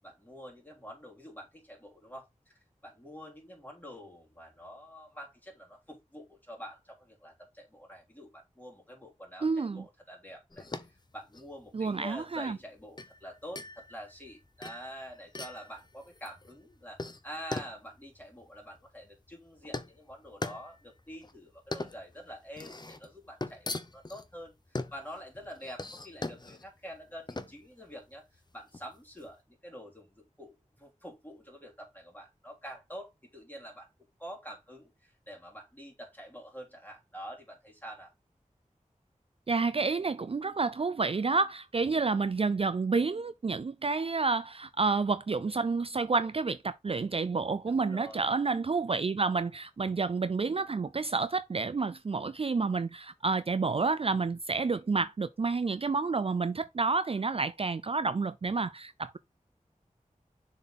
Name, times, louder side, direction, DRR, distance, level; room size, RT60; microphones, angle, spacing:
voice 1, 0.0-33.9 34.2-38.1 47.7-48.3, equal, 15° left, 3.2 m, -47 dB
voice 2, 9.4-9.8 11.7-12.6 39.5-59.2, right 4 dB, 45° right, 0.4 m, -29 dB
sound 1, 10.5-29.3, left 2 dB, 30° left, 0.7 m, -42 dB
6.8 x 4.3 x 3.8 m
wide cardioid pair, 55°, 14 cm